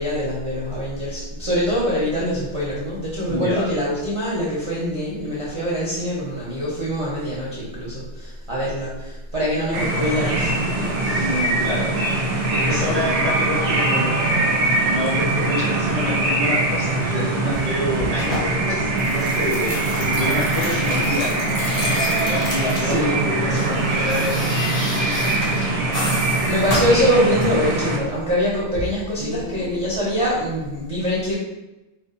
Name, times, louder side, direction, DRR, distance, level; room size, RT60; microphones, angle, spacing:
voice 1, 0.0-11.7 12.7-13.2 22.7-23.3 26.2-31.4, equal, 45° right, -7 dB, 0.4 m, -24 dB
voice 2, 3.3-3.7 11.2-12.0 12.5-24.5 25.0-25.6 26.0-26.3 29.2-29.8, left 1 dB, 40° left, -7 dB, 0.6 m, -28 dB
sound 1, 9.7-28.0, right 2 dB, 85° right, 0.9 m, -22 dB
sound 2, 17.5-19.2 19.5-23.0 23.3-27.7 28.7-28.9, left 1 dB, 65° left, 1.2 m, -31 dB
sound 3, 19.0-23.2, left 3 dB, 85° left, 1.0 m, -35 dB
2.6 x 2.1 x 2.4 m, 0.99 s
omnidirectional pair, 1.2 m